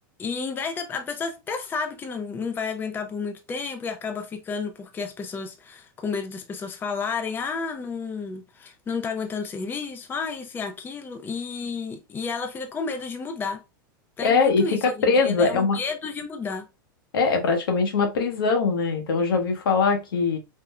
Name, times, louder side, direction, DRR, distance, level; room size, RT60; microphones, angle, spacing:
voice 1, 0.2-13.6 14.2-16.7, left 5 dB, 20° left, 0.4 m, -31 dB
voice 2, 14.2-15.8 17.1-20.4, left 4 dB, 85° left, 0.8 m, -22 dB
3.5 x 2.1 x 2.2 m
hypercardioid pair, 120°, 11 cm